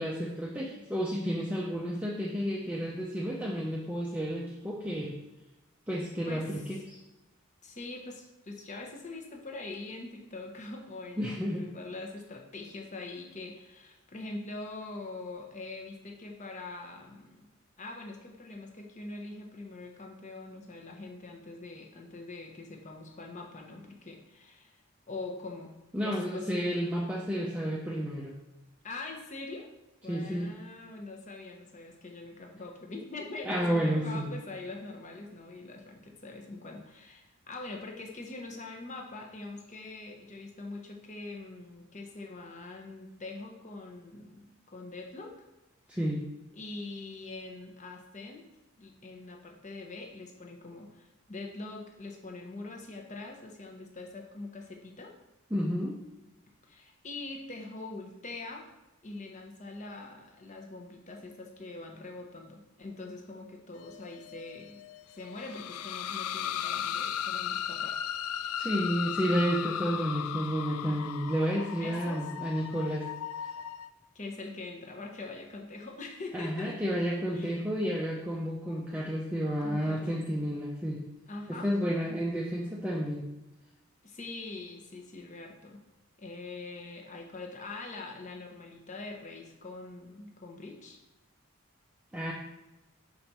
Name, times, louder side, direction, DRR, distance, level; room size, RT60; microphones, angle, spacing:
voice 1, 0.0-5.2 5.9-7.0 11.2-11.6 25.9-28.3 30.1-30.5 33.4-34.3 45.9-46.3 55.5-56.0 68.6-73.1 76.3-81.0 81.5-83.3 92.1-92.3, equal, 5° right, -4 dB, 0.6 m, -31 dB
voice 2, 7.6-17.5 17.8-24.8 25.1-25.7 26.0-26.9 28.8-29.7 30.0-45.4 46.5-48.5 48.8-55.1 56.6-58.7 59.0-64.8 65.1-68.0 68.4-68.5 71.8-72.2 74.1-76.8 77.3-77.6 79.6-80.2 81.3-81.7 84.0-85.8 86.2-91.0, left 3 dB, 35° left, 2 dB, 0.9 m, -43 dB
sound 1, 63.8-73.9, left 9 dB, 90° left, 0.3 m, -36 dB
5.1 x 4.1 x 5.9 m, 1.0 s
head